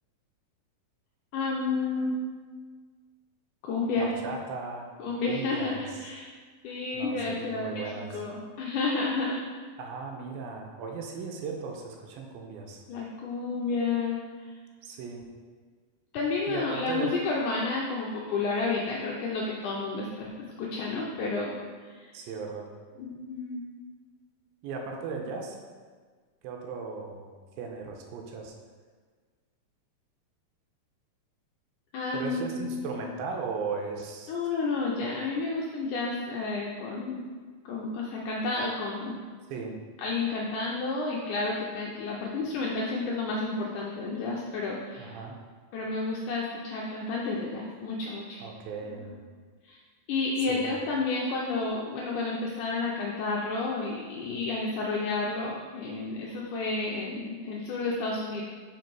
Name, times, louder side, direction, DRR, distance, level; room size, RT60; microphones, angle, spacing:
voice 1, 1.3-2.2 3.6-4.1 5.0-6.3 6.6-7.8 8.1-9.4 12.9-14.5 16.1-21.5 21.8-22.1 23.0-23.6 31.9-32.8 34.3-37.3 37.7-39.2 40.0-45.2 45.7-48.4 48.9-49.0 49.6-49.8 50.1-58.4, left 3 dB, 80° left, -3 dB, 1.8 m, -31 dB
voice 2, 4.0-4.9 5.3-6.1 6.9-8.2 9.8-12.8 14.8-15.3 16.5-17.2 22.1-22.7 24.6-25.6 26.4-27.3 27.6-28.5 32.1-34.3 35.0-35.2 39.5-39.8 45.0-45.4 48.4-49.1 50.5-50.7, right 4 dB, 85° right, 2 dB, 2.5 m, -37 dB
5.1 x 5.1 x 4.6 m, 1.5 s
omnidirectional pair, 4.2 m